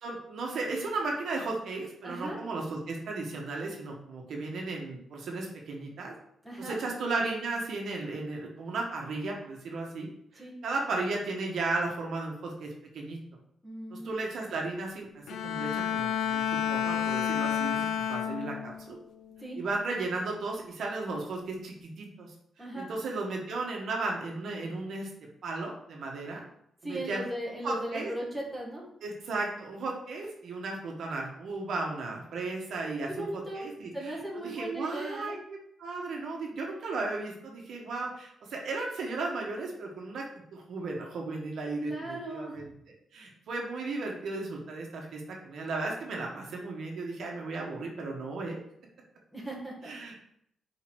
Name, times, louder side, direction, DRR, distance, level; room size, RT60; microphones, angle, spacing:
voice 1, 0.0-6.1 6.6-13.2 13.9-19.0 19.6-22.3 22.7-25.1 25.4-26.4 26.8-27.2 27.5-28.1 29.0-40.2 40.5-42.7 43.1-48.6 49.8-50.4, right 3 dB, 60° right, 0 dB, 1.4 m, -35 dB
voice 2, 2.0-2.4 6.4-6.8 10.4-10.5 13.6-14.1 19.4-19.6 22.6-22.9 26.8-28.8 33.1-33.6 33.9-35.4 41.8-42.6 49.3-49.9, right 1 dB, ahead, -4 dB, 1.8 m, -37 dB
Bowed string instrument, 15.3-18.8 19.3-19.7, left 8 dB, 85° left, 0.5 m, -30 dB
5.0 x 4.7 x 6.1 m, 0.71 s
wide cardioid pair, 175°, 0 cm